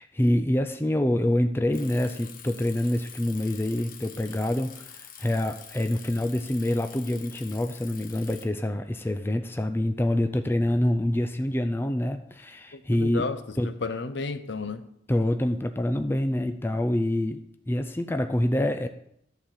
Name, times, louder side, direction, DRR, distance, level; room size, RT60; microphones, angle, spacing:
voice 1, 0.0-13.3 13.6-13.7 15.1-18.9, left 1 dB, 10° left, 7 dB, 0.4 m, -26 dB
Bicycle, 1.7-8.4, left 8 dB, 50° left, 1.0 m, -46 dB
voice 2, 12.7-14.9, left 4 dB, 70° left, 11 dB, 0.7 m, -33 dB
11.5 x 4.0 x 7.3 m, 0.73 s
head